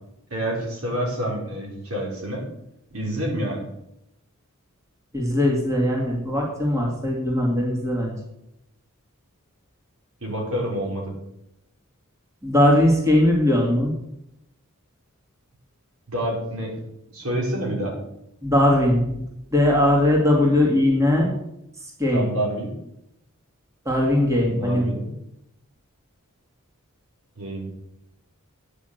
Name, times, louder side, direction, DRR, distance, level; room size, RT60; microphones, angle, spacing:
voice 1, 0.3-2.4 2.9-3.7 10.2-11.1 16.1-16.7 17.1-17.9 22.1-22.7 24.4-25.2 27.4-27.7, right 1 dB, 80° right, -2 dB, 4.2 m, -28 dB
voice 2, 5.1-8.2 12.4-13.9 18.4-19.2 19.5-21.3 21.8-22.3 23.8-24.9, left 1 dB, 15° right, -2 dB, 2.3 m, -20 dB
9.7 x 6.2 x 8.0 m, 0.82 s
head